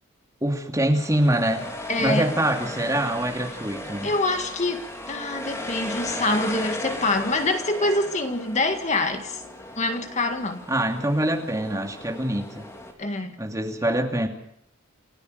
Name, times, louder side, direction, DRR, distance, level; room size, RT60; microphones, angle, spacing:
voice 1, 0.4-1.7 2.0-4.1 10.7-12.7 13.4-14.3, right 1 dB, 15° right, 3 dB, 2.6 m, -24 dB
sound 1, 1.0-12.9, left 1 dB, 15° left, 3.3 m, -36 dB
voice 2, 1.9-2.3 4.0-9.4 9.8-10.6 13.0-13.4, left 2 dB, 35° left, 6 dB, 1.8 m, -25 dB
29.0 x 14.0 x 6.6 m, 0.73 s
head